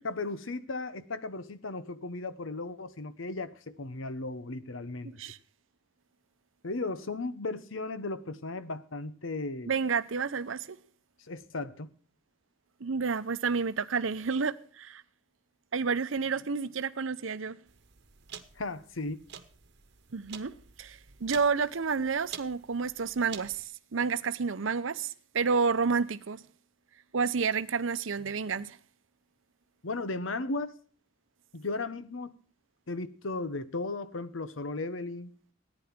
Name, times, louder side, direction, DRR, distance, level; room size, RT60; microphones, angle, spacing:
voice 1, 0.0-5.1 6.6-9.7 11.3-11.9 18.6-19.2 29.8-30.8 31.5-32.3 32.9-35.3, left 3 dB, 90° left, 1.0 m, -36 dB
voice 2, 9.7-10.8 12.8-15.0 15.7-17.5 20.1-20.5 20.8-26.4 27.1-28.8, right 5 dB, 75° right, 0.7 m, -30 dB
sound 1, 17.7-23.6, right 8 dB, 60° right, 1.2 m, -48 dB
14.0 x 9.9 x 5.9 m
head